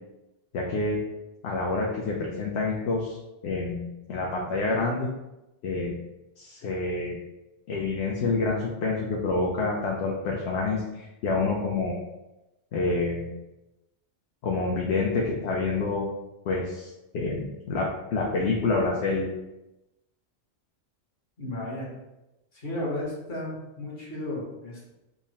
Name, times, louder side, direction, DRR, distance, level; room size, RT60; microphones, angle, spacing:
voice 1, 0.5-1.0 1.4-3.2 3.4-5.1 5.6-5.9 6.4-7.2 7.7-12.0 12.7-13.3 14.4-16.1 16.5-19.3, left 3 dB, 70° left, -2 dB, 0.8 m, -27 dB
voice 2, 21.4-21.9 22.5-24.9, left 1 dB, 55° left, -4 dB, 1.3 m, -34 dB
3.6 x 2.1 x 4.0 m, 0.97 s
omnidirectional pair, 1.2 m